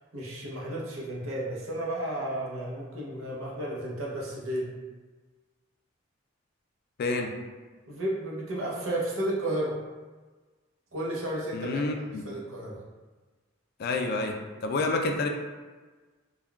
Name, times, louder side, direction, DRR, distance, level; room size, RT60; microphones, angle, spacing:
voice 1, 0.1-4.7 7.9-9.8 10.9-11.9 12.2-12.8, right 1 dB, 80° right, -4 dB, 0.7 m, -32 dB
voice 2, 7.0-7.3 11.5-12.2 13.8-14.4 14.6-15.3, left 3 dB, 50° left, 4 dB, 0.3 m, -28 dB
3.5 x 2.2 x 2.2 m, 1.3 s
head